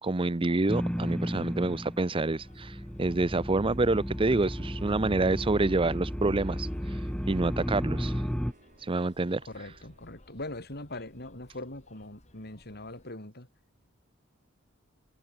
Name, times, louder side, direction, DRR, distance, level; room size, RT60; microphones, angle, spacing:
voice 1, 0.0-7.0 7.3-8.2 8.8-9.4, right 2 dB, 25° right, 0.6 m, -27 dB
sound 1, 0.7-2.1 2.4-8.5, equal, 5° left, 1.6 m, -33 dB
sound 2, 0.8-13.1, left 1 dB, 35° left, 3.4 m, -59 dB
sound 3, 2.3-10.5, right 2 dB, 40° right, 6.8 m, -63 dB
voice 2, 9.5-13.5, left 2 dB, 50° left, 5.8 m, -41 dB
head